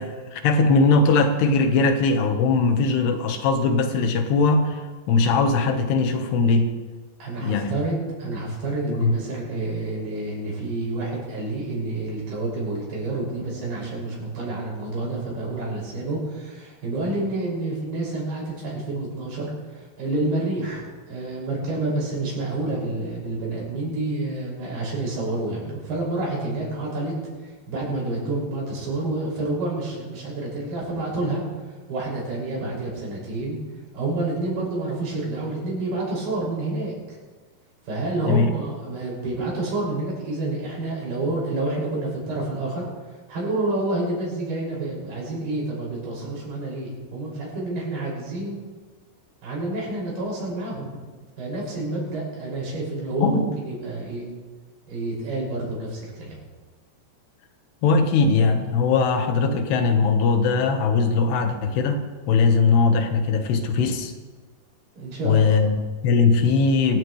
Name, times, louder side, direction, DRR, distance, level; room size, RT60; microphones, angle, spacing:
voice 1, 0.0-4.8 5.1-6.7 7.4-7.7 8.9-9.1 38.3-38.5 53.2-53.5 57.8-62.0 62.3-64.1 65.2-67.0, left 4 dB, 75° left, 6 dB, 3.3 m, -20 dB
voice 2, 7.2-19.5 20.0-27.1 27.4-31.4 31.9-33.6 33.9-37.2 37.9-42.8 43.3-48.6 49.4-50.9 51.4-54.3 54.9-56.4 65.0-65.6, right 2 dB, 65° right, -4 dB, 8.1 m, -28 dB
25.0 x 15.5 x 3.2 m, 1.4 s
omnidirectional pair, 5.0 m